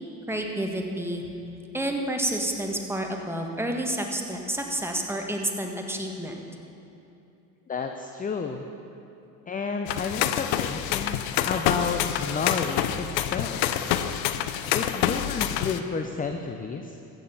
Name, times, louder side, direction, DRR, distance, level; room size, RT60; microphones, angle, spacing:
voice 1, 0.3-1.3 1.7-6.3, right 1 dB, 5° right, 1 dB, 1.6 m, -29 dB
voice 2, 7.7-8.6 9.5-11.2 11.4-13.6 14.7-17.0, left 5 dB, 15° left, 5 dB, 0.6 m, -31 dB
sound 1, 9.9-15.8, left 11 dB, 60° left, 0.8 m, -27 dB
14.5 x 9.2 x 5.7 m, 2.7 s
hypercardioid pair, 70°, 48 cm